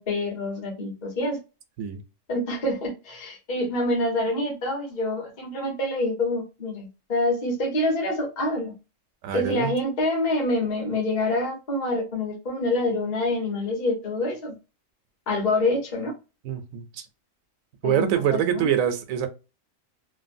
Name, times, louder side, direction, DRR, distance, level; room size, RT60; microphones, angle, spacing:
voice 1, 0.0-1.4 2.3-8.7 9.3-14.5 15.3-16.1 17.8-18.6, left 1 dB, 35° left, 0.9 m, -26 dB
voice 2, 9.2-9.7 16.4-17.1 17.8-19.3, right 9 dB, 90° right, 1.0 m, -25 dB
3.2 x 2.2 x 2.5 m
omnidirectional pair, 1.4 m